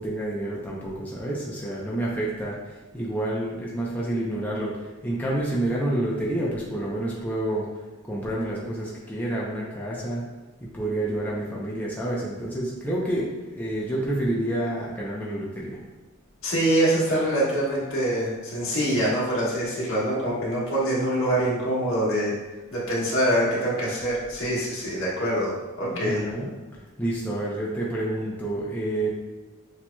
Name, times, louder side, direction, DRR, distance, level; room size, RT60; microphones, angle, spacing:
voice 1, 0.0-7.6 8.0-10.2 10.6-15.8 25.9-26.6 27.0-29.1, right 1 dB, 10° left, -6 dB, 0.6 m, -29 dB
voice 2, 16.4-22.4 22.7-26.2, right 1 dB, 65° left, -6 dB, 1.4 m, -24 dB
7.2 x 2.9 x 2.3 m, 1.2 s
head